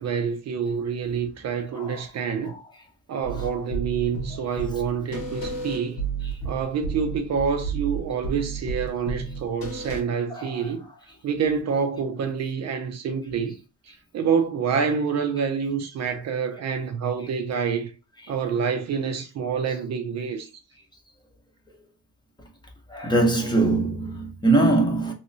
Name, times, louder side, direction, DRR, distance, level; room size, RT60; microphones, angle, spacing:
voice 1, 0.0-2.6 3.1-6.0 6.4-10.9 11.2-13.6 14.1-17.9 18.3-20.5, right 6 dB, 50° right, 0.5 m, -27 dB
voice 2, 1.7-2.0 2.5-2.6 10.3-10.7 22.9-25.1, right 2 dB, 15° left, 0.8 m, -22 dB
sound 1, 3.2-10.0, right 4 dB, 75° left, 1.3 m, -32 dB
3.1 x 3.0 x 2.6 m
cardioid pair, 160°, 34 cm